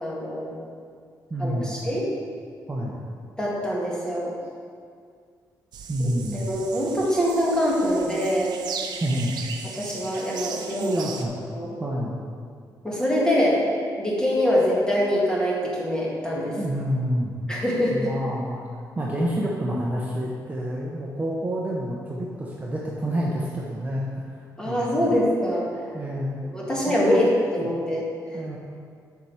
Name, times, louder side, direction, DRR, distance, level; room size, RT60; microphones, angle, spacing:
voice 1, 0.0-0.6 1.4-2.1 3.4-4.3 6.0-8.6 9.6-11.0 11.5-11.7 12.8-13.6 14.0-16.5 17.5-18.1 24.6-25.7 26.5-27.3 27.5-28.1, equal, 10° left, -5 dB, 1.9 m, -24 dB
voice 2, 1.3-1.8 2.7-3.1 5.9-6.5 9.0-9.3 10.8-11.3 11.8-12.2 16.6-17.4 17.9-18.6 19.0-24.4 24.6-25.0 25.9-26.4 26.9-27.2 27.6-27.7 28.3-28.6, equal, 20° right, -4 dB, 0.9 m, -28 dB
sound 1, 5.7-11.3, right 6 dB, 80° right, 0.7 m, -37 dB
7.3 x 4.8 x 5.6 m, 2.1 s
cardioid pair, 115°, 7 cm